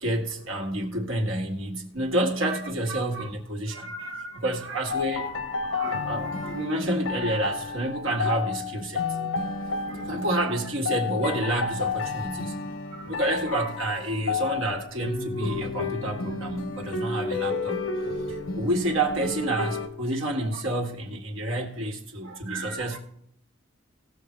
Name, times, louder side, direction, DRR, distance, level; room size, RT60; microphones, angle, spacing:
voice 1, 0.0-3.9 4.4-5.3 6.0-9.0 10.1-12.6 13.1-17.8 18.3-23.0, right 1 dB, 90° right, 1.9 m, -29 dB
voice 2, 3.7-4.3 4.9-5.3 5.7-6.1 6.3-6.5 9.1-9.2 9.9-10.1 13.0-13.1 13.5-13.6 22.3-23.0, right 3 dB, 70° right, 0.9 m, -37 dB
sound 1, 4.9-19.9, left 4 dB, 85° left, 1.0 m, -31 dB
18.0 x 6.7 x 3.3 m
head